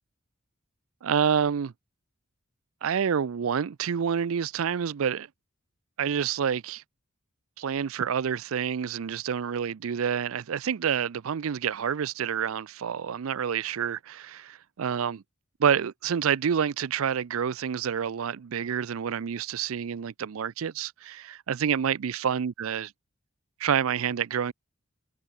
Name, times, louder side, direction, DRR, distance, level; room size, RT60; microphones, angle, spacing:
voice 1, 1.0-1.7 2.8-5.3 6.0-6.8 7.6-15.2 15.6-22.9 23.6-24.5, right 7 dB, 75° right, 0.4 m, -28 dB
head